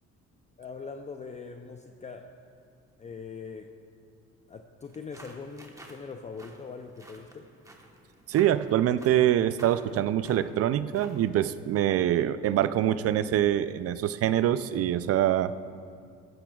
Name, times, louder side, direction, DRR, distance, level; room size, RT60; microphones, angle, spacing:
voice 1, 0.6-2.3 3.0-3.7 4.5-7.5, left 5 dB, 25° left, 5 dB, 0.4 m, -42 dB
sound 1, 4.8-11.3, right 1 dB, 10° right, 1.1 m, -52 dB
voice 2, 8.3-15.5, right 11 dB, 50° right, 14 dB, 0.4 m, -25 dB
14.5 x 12.0 x 2.3 m, 2.3 s
cardioid pair, 105°, 30 cm